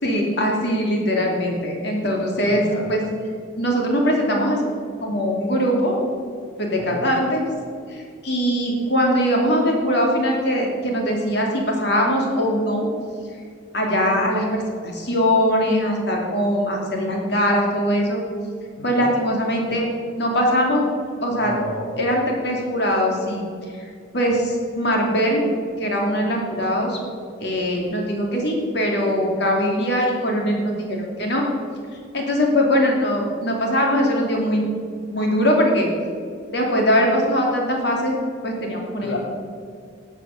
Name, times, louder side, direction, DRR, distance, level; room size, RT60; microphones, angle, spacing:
voice 1, 0.0-3.0 3.6-4.6 5.0-6.0 6.6-7.4 7.9-12.9 13.7-14.6 14.9-18.2 18.8-19.9 20.2-20.9 21.2-21.6 22.0-23.5 23.7-25.5 25.8-27.0 27.4-31.5 32.1-34.6 35.1-35.9 36.5-38.2 38.4-39.2, equal, 55° left, 0 dB, 2.7 m, -21 dB
voice 2, 2.4-2.9 6.8-7.0 18.8-19.1 21.3-21.9 39.0-39.2, left 2 dB, 75° left, 0 dB, 1.3 m, -32 dB
12.5 x 7.9 x 6.6 m, 2.2 s
head